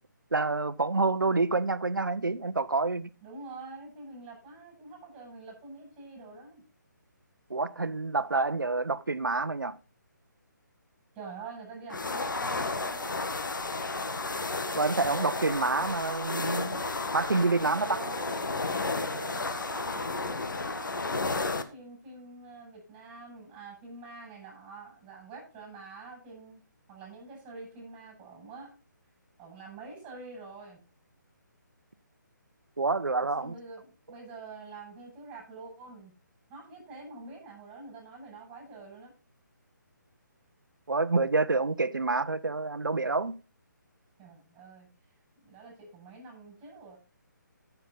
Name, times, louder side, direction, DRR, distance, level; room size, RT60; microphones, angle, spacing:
voice 1, 0.3-3.1 7.5-9.8 14.8-16.8 17.1-18.0 32.8-33.5 40.9-43.3, right 3 dB, 85° right, 0.8 m, -28 dB
voice 2, 3.2-6.6 11.1-13.2 17.5-18.5 18.8-26.6 26.9-28.7 29.4-30.8 33.3-36.1 36.5-39.1 44.2-44.9 45.4-47.0, right 3 dB, 15° right, 7.3 m, -46 dB
sound 1, 11.9-21.6, left 3 dB, 75° left, 1.5 m, -32 dB
15.0 x 7.0 x 4.0 m
figure-of-eight pair, 145°, 11 cm